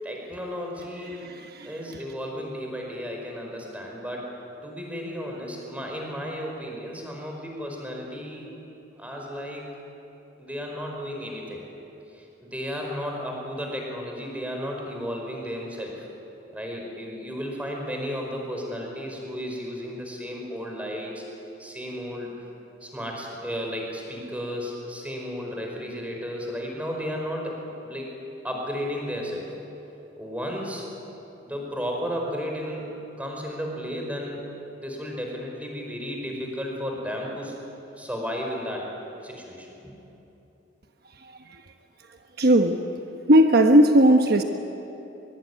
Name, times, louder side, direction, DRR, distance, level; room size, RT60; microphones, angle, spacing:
voice 1, 0.0-1.3 1.6-4.3 4.6-8.5 8.9-9.8 10.4-11.6 12.1-16.1 16.5-21.2 21.6-22.3 22.8-28.1 28.4-29.5 30.2-30.8 31.4-32.9 33.2-37.5 38.0-38.9 39.2-39.9, equal, 10° right, 0 dB, 5.1 m, -33 dB
voice 2, 42.4-42.8 43.3-44.4, right 1 dB, 55° right, 5 dB, 1.1 m, -16 dB
23.0 x 22.5 x 9.8 m, 3.0 s
head